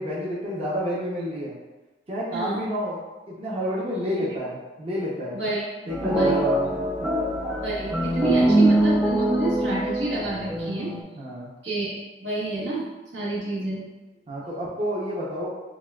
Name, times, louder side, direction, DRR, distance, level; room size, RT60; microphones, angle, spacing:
voice 1, 0.0-1.5 2.1-3.0 3.3-5.4 5.9-7.1 11.2-11.5 14.3-15.6, equal, 35° right, -7 dB, 0.7 m, -29 dB
voice 2, 2.3-2.6 4.2-4.3 5.3-5.6 6.1-6.4 7.6-10.9 11.6-12.8 13.1-13.9, right 2 dB, 80° right, -7 dB, 1.2 m, -29 dB
sound 1, 5.9-11.0, right 1 dB, ahead, 0.4 m, -23 dB
6.0 x 2.2 x 2.3 m, 1.2 s
head